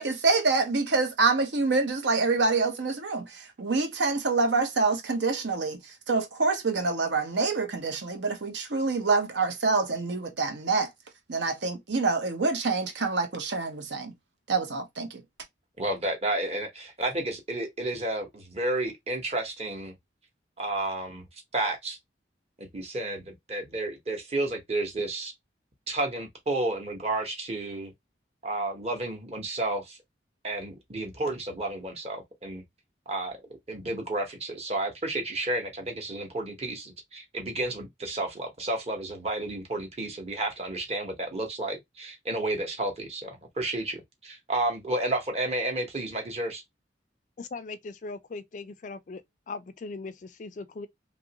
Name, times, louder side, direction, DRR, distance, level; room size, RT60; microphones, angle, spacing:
voice 1, 0.0-10.9 11.3-14.1 14.5-15.2, right 3 dB, 70° right, 0.8 m, -26 dB
voice 2, 15.8-19.9 20.6-21.2 21.5-22.0 22.6-25.3 25.9-27.9 28.4-30.0 30.4-32.6 33.1-33.4 33.7-46.6, right 2 dB, 35° right, 1.0 m, -31 dB
voice 3, 47.4-49.2 49.5-50.9, left 3 dB, 40° left, 0.3 m, -39 dB
2.9 x 2.5 x 2.8 m
head